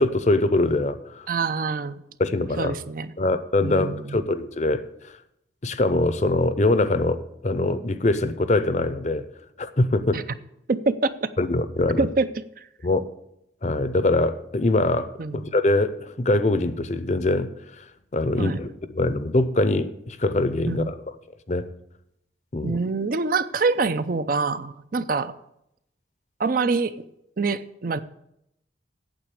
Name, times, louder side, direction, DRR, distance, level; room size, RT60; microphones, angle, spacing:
voice 1, 0.0-1.3 2.2-2.8 3.2-5.1 5.6-9.3 9.6-10.2 11.4-12.1 12.8-13.0 13.6-17.5 18.1-18.7 18.9-20.9 21.5-21.7 22.5-22.8, left 2 dB, 40° left, 13 dB, 0.7 m, -23 dB
voice 2, 1.3-2.0 2.6-3.1 3.6-4.2 10.1-10.2 10.7-11.3 12.0-12.3 12.6-12.7 15.2-15.4 18.4-18.6 20.7-20.9 22.6-25.3 26.4-27.0 27.4-28.0, right 4 dB, 50° right, 12 dB, 0.5 m, -25 dB
9.0 x 7.2 x 8.5 m, 0.80 s
head